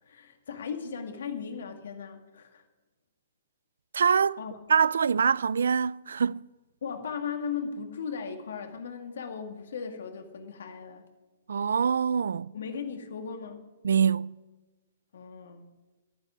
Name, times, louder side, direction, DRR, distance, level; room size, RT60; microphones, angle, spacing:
voice 1, 0.0-2.6 4.4-4.6 6.8-11.1 12.5-13.6 15.1-15.7, left 6 dB, 65° left, 2.0 m, -37 dB
voice 2, 3.9-4.4 4.7-6.4 11.5-12.5 13.8-14.4, right 6 dB, 90° right, 0.3 m, -24 dB
11.0 x 10.0 x 9.9 m
hypercardioid pair, 175°, 0 cm